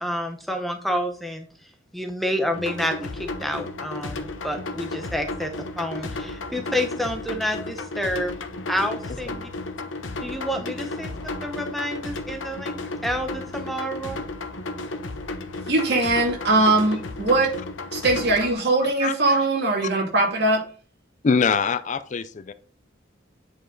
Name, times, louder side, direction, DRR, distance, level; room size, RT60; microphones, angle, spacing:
voice 1, 0.0-1.5 1.9-5.5 5.8-8.3 8.7-9.5 10.2-11.1 11.4-14.2, equal, ahead, 0.8 m, -29 dB
sound 1, 2.5-18.5, left 2 dB, 80° left, 1.0 m, -33 dB
voice 2, 15.7-17.5 17.9-20.6, right 2 dB, 60° right, 2.5 m, -21 dB
voice 3, 21.2-22.5, left 5 dB, 40° left, 0.4 m, -23 dB
8.9 x 5.3 x 3.8 m
head